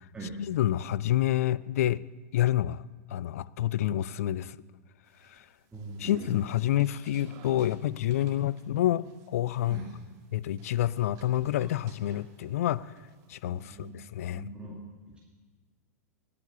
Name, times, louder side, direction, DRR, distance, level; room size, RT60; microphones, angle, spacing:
voice 1, 0.4-2.0 2.3-2.8 3.1-4.6 6.0-9.8 10.3-12.9 13.3-14.5, left 12 dB, 65° left, 21 dB, 0.4 m, -28 dB
sound 1, 5.1-12.6 13.0-13.9, right 6 dB, 40° right, 1.9 m, -52 dB
voice 2, 5.7-6.1 9.7-9.8 13.4-13.9 14.2-14.8 15.1-15.2, right 2 dB, 10° right, -4 dB, 2.3 m, -42 dB
19.5 x 6.9 x 6.7 m, 1.4 s
figure-of-eight pair, 95°, 9 cm